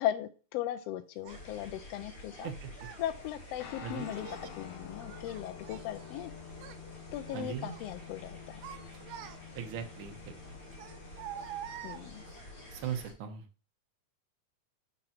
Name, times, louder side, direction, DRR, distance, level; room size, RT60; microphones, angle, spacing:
voice 1, 0.0-2.5 3.0-6.3 7.1-8.6 11.8-12.2, left 12 dB, 85° left, 11 dB, 1.4 m, -37 dB
Child speech kid speaking, 1.2-1.4 2.3-3.1 4.0-4.6 5.0-6.3 6.5-6.8 7.3-7.9 8.3-9.7 10.7-12.4, right 10 dB, 85° right, 2.1 m, -46 dB
sound 1, 1.3-13.1, left 1 dB, 35° left, 2.9 m, -50 dB
Guitar, 3.6-12.4, left 10 dB, 70° left, 2.3 m, -50 dB
voice 2, 3.8-4.1 7.3-7.8 9.5-10.3 12.7-13.4, right 8 dB, 60° right, 4 dB, 1.5 m, -38 dB
5.3 x 4.3 x 5.7 m, 0.35 s
omnidirectional pair, 3.4 m